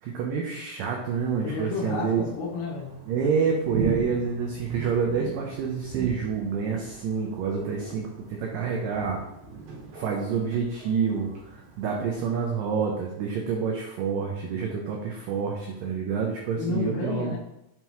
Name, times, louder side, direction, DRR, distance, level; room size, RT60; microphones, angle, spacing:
voice 1, 0.0-2.2 3.1-9.2 9.9-17.3, right 6 dB, 90° right, 0 dB, 1.9 m, -28 dB
Thunder, 1.2-12.1, right 5 dB, 75° right, 3.1 m, -39 dB
voice 2, 1.4-2.9 16.6-17.4, left 4 dB, 80° left, -4 dB, 3.5 m, -31 dB
7.3 x 4.6 x 3.0 m, 0.86 s
omnidirectional pair, 4.8 m